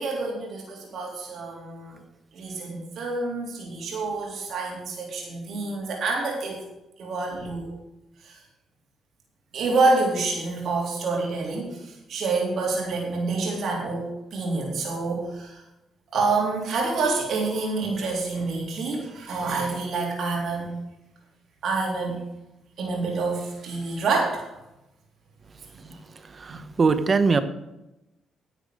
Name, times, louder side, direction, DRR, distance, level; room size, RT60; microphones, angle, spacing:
voice 1, 0.0-1.9 2.3-6.6 7.0-7.7 8.2-8.3 9.5-11.8 12.1-14.0 14.3-15.5 16.1-20.7 21.6-22.2 22.8-24.5 26.5-26.6, right 3 dB, 65° right, -2 dB, 3.6 m, -27 dB
voice 2, 26.4-27.4, right 4 dB, 35° right, 11 dB, 1.1 m, -21 dB
10.5 x 8.0 x 6.6 m, 0.95 s
cardioid pair, 90°, 0 cm